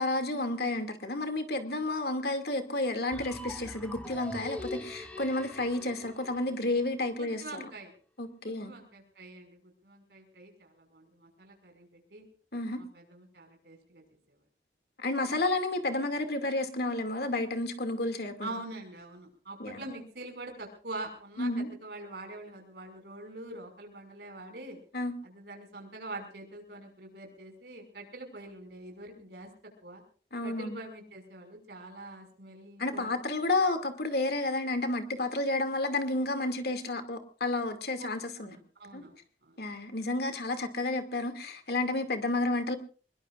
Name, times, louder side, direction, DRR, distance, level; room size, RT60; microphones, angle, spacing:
voice 1, 0.0-7.4 8.2-8.7 12.5-12.8 15.0-18.5 19.6-19.8 21.4-21.7 24.9-25.1 30.3-30.8 32.8-38.6 38.9-39.1 39.6-42.8, left 2 dB, 60° left, 7 dB, 2.4 m, -31 dB
sound 1, 3.1-7.1, left 1 dB, 10° left, 2.2 m, -43 dB
voice 2, 7.2-7.9 8.3-12.3 12.8-14.4 18.4-24.8 25.2-29.5 29.8-30.0 30.4-33.1 38.0-38.1 38.4-39.6, right 2 dB, 65° right, 3 dB, 5.6 m, -45 dB
24.0 x 21.5 x 2.5 m, 0.40 s
head